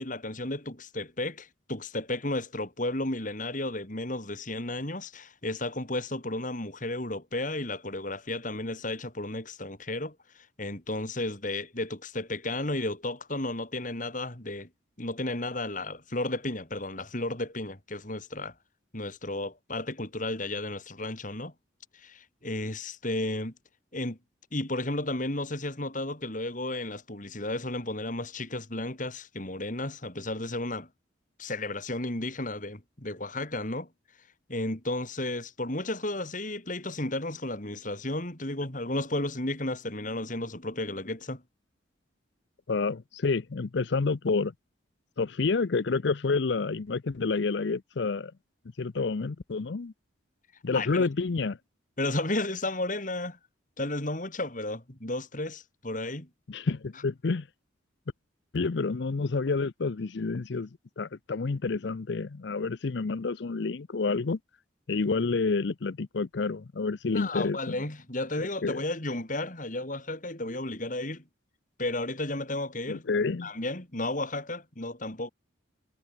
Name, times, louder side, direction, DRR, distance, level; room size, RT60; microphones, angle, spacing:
voice 1, 0.0-14.7 15.0-18.5 18.9-21.5 21.9-23.5 23.9-24.2 24.5-30.9 31.4-33.9 34.5-41.4 50.7-51.1 52.0-53.4 53.8-56.3 67.1-71.2 71.8-73.0 73.4-75.3, left 2 dB, 40° left, 3.3 m, -33 dB
voice 2, 42.7-44.5 45.2-48.3 48.8-49.9 50.6-51.6 56.5-57.5 58.5-60.7 61.0-64.4 64.9-67.8 68.6-68.8 72.9-73.5, left 4 dB, 60° left, 0.6 m, -29 dB
head